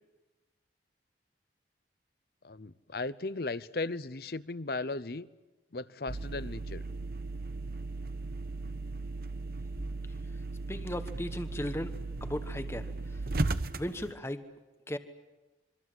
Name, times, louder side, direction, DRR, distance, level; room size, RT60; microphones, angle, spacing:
voice 1, 2.4-5.3 5.7-6.8, left 3 dB, 55° left, 17 dB, 0.8 m, -36 dB
sound 1, 6.1-14.1, right 2 dB, 55° right, 1.0 m, -36 dB
voice 2, 10.7-11.9 12.2-13.2 13.8-14.5 14.9-15.0, left 1 dB, 15° left, 9 dB, 1.2 m, -36 dB
26.5 x 24.0 x 7.8 m, 1.1 s
head